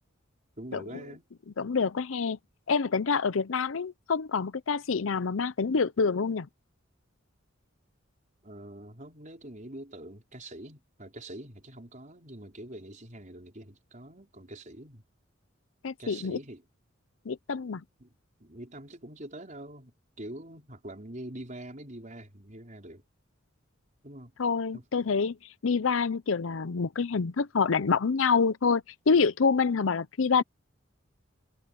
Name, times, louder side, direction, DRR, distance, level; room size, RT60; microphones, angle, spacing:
voice 1, 0.6-1.2 8.4-15.0 16.0-16.6 18.0-18.1 18.4-23.0 24.0-24.3 24.7-24.8, right 1 dB, 40° right, 5.2 m, -44 dB
voice 2, 1.6-2.4 2.7-6.5 15.8-16.4 17.3-17.8 24.4-25.4 25.6-30.4, left 5 dB, 80° left, 0.6 m, -26 dB
head